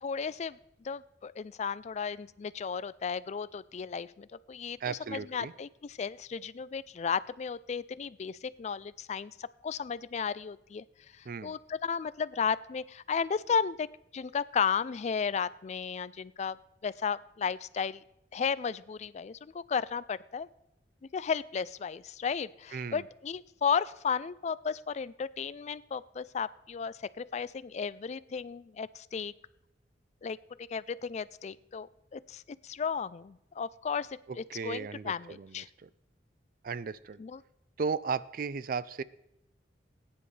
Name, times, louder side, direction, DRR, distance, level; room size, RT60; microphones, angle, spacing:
voice 1, 0.0-10.8 11.1-13.9 14.1-16.6 16.8-18.0 18.3-20.5 21.1-29.3 30.2-35.7 37.2-37.4, left 6 dB, 40° left, 18 dB, 0.3 m, -34 dB
voice 2, 4.8-5.5 11.3-11.6 22.7-23.0 34.3-35.9 36.6-37.2 37.8-39.0, right 5 dB, 55° right, 17 dB, 0.4 m, -36 dB
20.0 x 9.9 x 3.3 m, 0.84 s
head